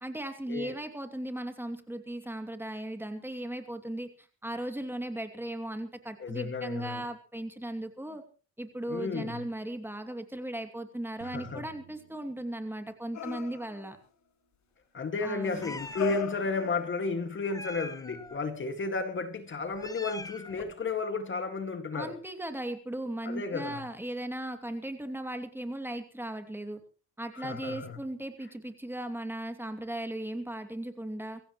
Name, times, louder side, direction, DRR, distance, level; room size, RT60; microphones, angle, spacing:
voice 1, 0.0-8.2 8.6-14.0 15.2-15.7 21.9-26.8 27.2-31.4, right 1 dB, 5° right, 2.7 m, -37 dB
voice 2, 6.2-7.1 8.9-9.5 11.2-11.7 14.9-22.2 23.2-23.8 27.3-28.0, left 3 dB, 40° left, 2.1 m, -33 dB
sound 1, 11.2-13.4, right 11 dB, 70° right, 1.8 m, -53 dB
sound 2, 13.1-14.0 15.4-17.4 18.8-18.9, left 11 dB, 65° left, 2.1 m, -38 dB
Meow, 15.6-16.3 17.5-18.4 19.6-20.8, left 2 dB, 10° left, 0.8 m, -43 dB
23.5 x 16.0 x 3.1 m
cardioid pair, 90°, 30 cm